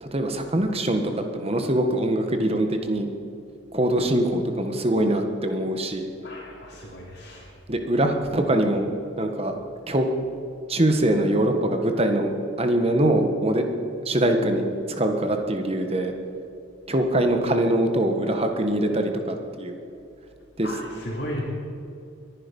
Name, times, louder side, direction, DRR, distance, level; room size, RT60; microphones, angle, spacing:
voice 1, 0.0-3.1 3.7-6.1 7.7-8.9 9.2-9.5 9.9-10.1 10.7-12.3 12.6-13.6 14.0-14.6 15.0-16.1 16.9-19.7 20.6-20.7, right 1 dB, 30° right, 5 dB, 1.4 m, -23 dB
voice 2, 6.2-7.5 20.6-21.4, equal, 55° left, -6 dB, 3.0 m, -35 dB
22.0 x 10.5 x 5.4 m, 2.6 s
head